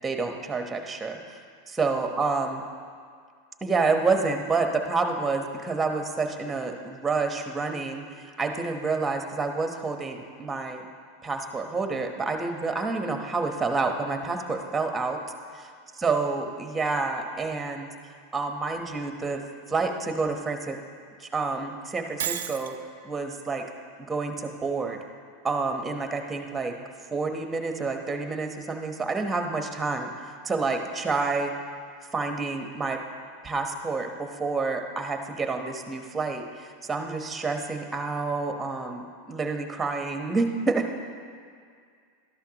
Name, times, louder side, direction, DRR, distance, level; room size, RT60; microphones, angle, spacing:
voice 1, 0.0-1.4 1.7-2.6 3.6-8.1 8.4-10.9 11.2-15.2 16.0-17.9 18.3-19.4 19.7-20.8 21.2-22.7 23.0-23.6 24.1-25.0 25.4-26.8 27.1-30.1 30.4-31.5 32.1-33.0 33.4-40.9, right 4 dB, 15° right, 4 dB, 1.1 m, -28 dB
Shatter, 22.2-22.7, right 9 dB, 85° right, 0.5 m, -31 dB
13.0 x 11.0 x 3.0 m, 2.1 s
hypercardioid pair, 110°, 0 cm